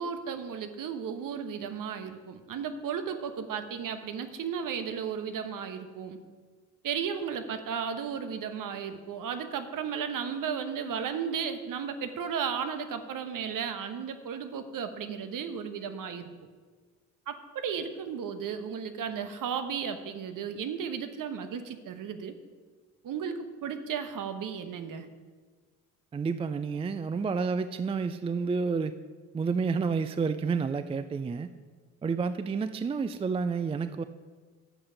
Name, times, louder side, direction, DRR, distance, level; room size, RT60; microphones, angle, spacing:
voice 1, 0.0-6.2 6.8-16.3 17.3-22.3 23.0-25.1, right 7 dB, 50° right, 9 dB, 1.2 m, -34 dB
voice 2, 26.1-28.9 29.3-31.5 32.0-34.0, right 5 dB, 15° right, 12 dB, 0.4 m, -30 dB
12.0 x 8.7 x 5.1 m, 1.5 s
hypercardioid pair, 60°, 41 cm